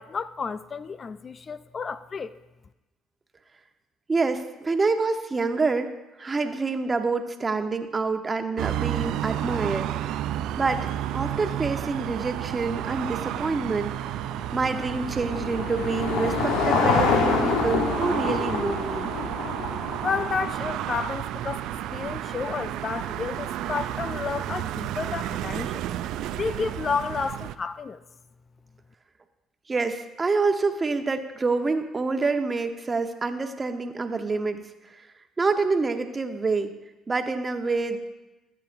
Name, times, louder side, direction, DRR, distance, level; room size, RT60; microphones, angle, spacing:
voice 1, 0.0-2.3 20.0-25.8 26.3-28.0, left 5 dB, 40° left, 0.4 m, -31 dB
voice 2, 4.1-5.9 6.2-10.1 10.6-13.9 14.5-19.1 29.7-34.6 35.4-36.7 37.1-38.0, right 4 dB, 30° right, 1.1 m, -27 dB
sound 1, 8.6-27.5, right 12 dB, 75° right, 0.4 m, -31 dB
Car passing by / Engine, 14.3-20.7, left 4 dB, 80° left, 1.2 m, -26 dB
16.0 x 8.7 x 2.6 m
hypercardioid pair, 60°, 0 cm